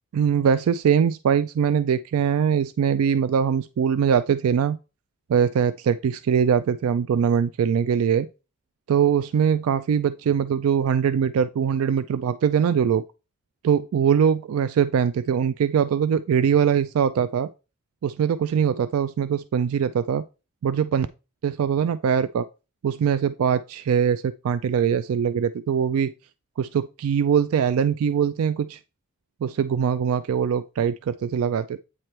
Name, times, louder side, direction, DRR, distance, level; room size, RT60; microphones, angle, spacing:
voice 1, 0.1-4.8 5.3-8.3 8.9-13.0 13.6-17.5 18.0-20.2 20.6-21.1 21.4-22.5 22.8-26.1 26.6-28.8 29.4-31.8, right 7 dB, 85° right, 0.3 m, -22 dB
8.6 x 3.2 x 4.4 m
head